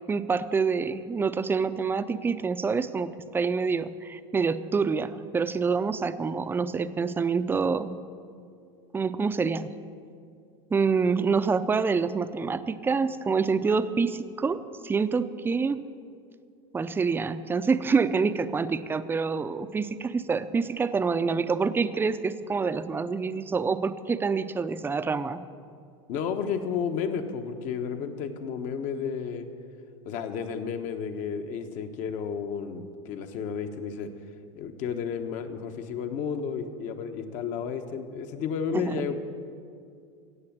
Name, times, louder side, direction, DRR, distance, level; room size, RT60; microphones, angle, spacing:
voice 1, 0.1-8.0 8.9-9.7 10.7-15.8 16.7-25.4 38.7-39.0, right 5 dB, 15° right, 12 dB, 0.5 m, -27 dB
voice 2, 26.1-29.5 30.0-34.1 34.5-39.1, left 6 dB, 55° left, 7 dB, 1.2 m, -32 dB
16.5 x 7.1 x 7.5 m, 2.3 s
hypercardioid pair, 110°, 16 cm